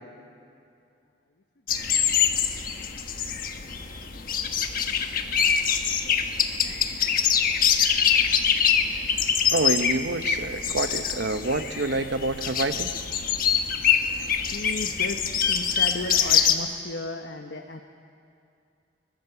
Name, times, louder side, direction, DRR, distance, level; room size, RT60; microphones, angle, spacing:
sound 1, 1.7-16.5, left 7 dB, 50° left, 1.2 m, -24 dB
voice 1, 6.1-6.8 14.1-15.2 15.5-17.8, left 2 dB, 70° left, 5 dB, 1.1 m, -36 dB
voice 2, 9.5-12.9, right 2 dB, 70° right, 10 dB, 1.0 m, -27 dB
22.0 x 21.0 x 7.0 m, 2.5 s
head